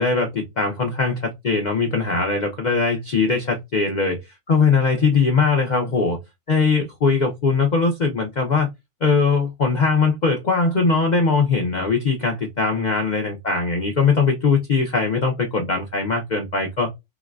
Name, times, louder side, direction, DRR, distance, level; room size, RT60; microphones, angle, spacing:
voice 1, 0.0-4.2 4.5-6.2 6.5-8.7 9.0-16.9, left 4 dB, 55° left, 0.4 m, -20 dB
3.8 x 2.1 x 2.3 m
omnidirectional pair, 1.6 m